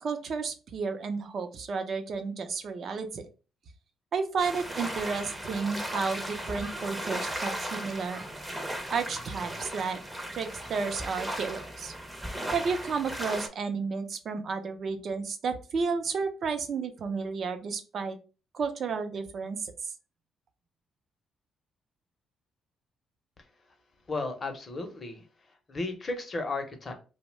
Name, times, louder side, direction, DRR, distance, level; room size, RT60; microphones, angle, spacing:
voice 1, 0.0-3.2 4.1-8.2 8.9-10.0 10.3-11.9 12.5-18.2 18.5-19.7, right 5 dB, 55° right, 8 dB, 0.5 m, -32 dB
sound 1, 4.4-13.5, right 1 dB, 5° right, 0.6 m, -36 dB
voice 2, 24.1-25.2 25.7-26.9, left 2 dB, 35° left, 5 dB, 0.7 m, -34 dB
2.7 x 2.1 x 3.1 m, 0.34 s
cardioid pair, 90°, 0 cm